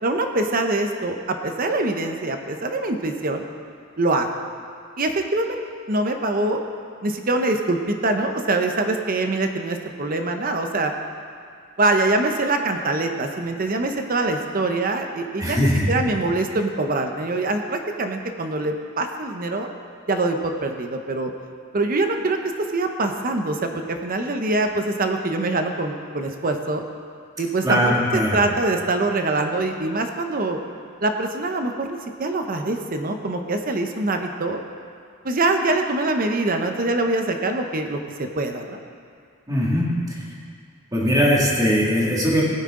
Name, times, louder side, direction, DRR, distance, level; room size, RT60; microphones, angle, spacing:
voice 1, 0.0-3.5 4.0-4.3 5.0-5.6 5.9-6.6 7.0-10.9 11.8-19.7 20.1-21.3 21.7-26.8 27.4-27.8 28.1-30.6 31.0-34.6 35.2-38.8, right 2 dB, 40° right, 5 dB, 0.8 m, -24 dB
voice 2, 15.4-15.9 27.6-28.4 39.5-40.2 40.9-42.4, equal, 15° right, -4 dB, 2.2 m, -20 dB
17.0 x 9.6 x 3.7 m, 2.2 s
head